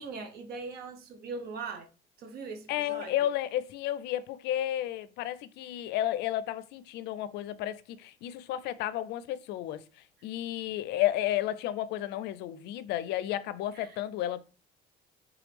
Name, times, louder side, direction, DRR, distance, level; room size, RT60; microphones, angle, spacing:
voice 1, 0.0-1.9 2.2-3.1 13.7-14.0, right 4 dB, 70° right, 0.8 m, -40 dB
voice 2, 2.7-9.8 10.2-14.4, left 13 dB, 80° left, 0.4 m, -32 dB
3.6 x 3.1 x 3.3 m
cardioid pair, 110°, 17 cm